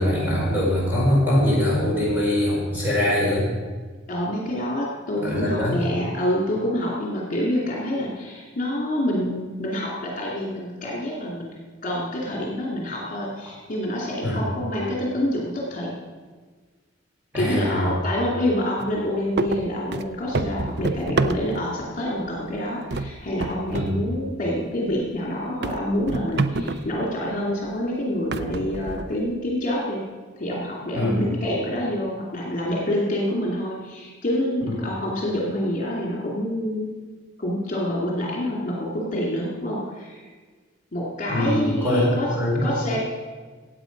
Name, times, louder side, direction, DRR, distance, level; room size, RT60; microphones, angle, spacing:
voice 1, 0.0-3.5 5.2-5.8 14.2-14.4 17.3-17.8 23.7-23.9 30.9-31.2 41.3-42.6, left 1 dB, 10° right, -6 dB, 5.0 m, -22 dB
voice 2, 4.1-11.5 11.8-16.0 17.4-30.0 30.4-36.9 37.4-40.3 40.9-42.3 42.6-43.0, left 1 dB, 40° left, -4 dB, 2.7 m, -27 dB
sound 1, 18.8-19.0 19.4-21.8 22.3-22.6 22.9-24.0 24.3-24.4 24.9-25.0 25.6-27.0 27.7-27.8 28.3-29.3, right 3 dB, 55° right, 0.6 m, -28 dB
15.5 x 8.7 x 5.3 m, 1.4 s
head